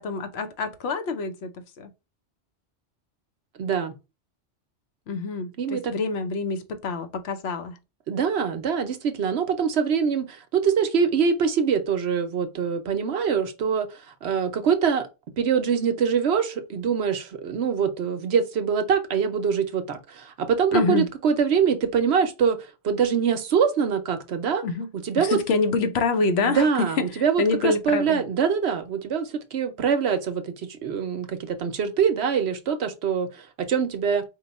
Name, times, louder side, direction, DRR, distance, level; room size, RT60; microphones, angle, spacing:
voice 1, 0.0-1.5 1.8-1.9 5.1-7.8 20.7-21.0 24.6-24.9 25.2-27.1 27.4-28.2, left 4 dB, 65° left, 0.9 m, -26 dB
voice 2, 3.6-3.9 5.6-5.8 8.1-15.1 15.4-22.6 22.8-24.6 24.9-25.4 26.4-34.2, right 6 dB, 65° right, 0.9 m, -24 dB
4.7 x 2.2 x 4.0 m
omnidirectional pair, 1.3 m